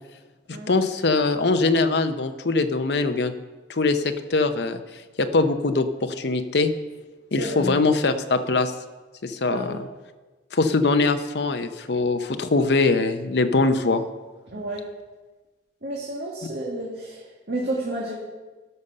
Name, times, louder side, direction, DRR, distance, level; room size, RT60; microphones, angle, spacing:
voice 1, 0.7-3.3 3.7-4.8 5.2-6.7 7.3-8.7 9.2-9.8 10.5-14.0, left 3 dB, 65° left, 8 dB, 0.7 m, -22 dB
voice 2, 7.4-7.7 9.5-9.8 14.5-14.8 15.8-18.1, right 1 dB, 60° right, -4 dB, 1.7 m, -31 dB
12.5 x 5.5 x 6.7 m, 1.2 s
head